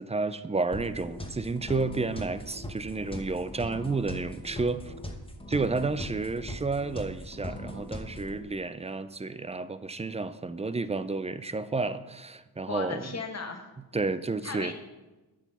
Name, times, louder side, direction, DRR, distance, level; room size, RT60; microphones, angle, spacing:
voice 1, 0.0-4.9 5.5-13.1 13.9-14.7, right 3 dB, 20° right, 0.4 m, -31 dB
sound 1, 0.7-8.4, left 1 dB, 15° left, 0.9 m, -40 dB
voice 2, 12.7-13.7 14.4-14.7, left 4 dB, 40° left, 1.3 m, -36 dB
10.0 x 6.2 x 5.5 m
wide cardioid pair, 140°, 39 cm